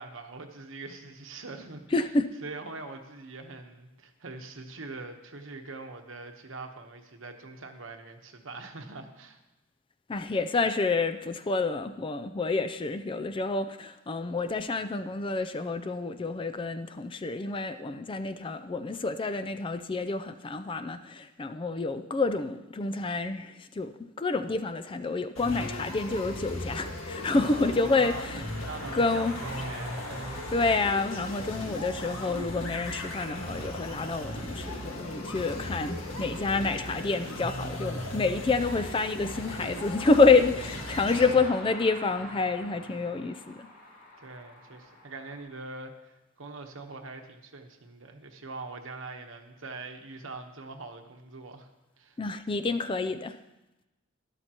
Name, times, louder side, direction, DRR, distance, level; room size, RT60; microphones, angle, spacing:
voice 1, 0.0-1.8 2.4-9.4 27.3-30.1 40.7-41.4 44.2-51.7 52.0-52.2, right 3 dB, 70° right, 5 dB, 1.1 m, -43 dB
voice 2, 1.9-2.3 10.1-28.4 28.9-29.4 30.5-43.7 52.2-53.4, left 3 dB, 25° left, 10 dB, 0.4 m, -28 dB
sound 1, 25.4-41.4, left 1 dB, 80° left, 1.7 m, -37 dB
sound 2, 27.4-45.4, left 1 dB, 50° left, 3.7 m, -48 dB
12.5 x 12.0 x 2.9 m, 0.99 s
head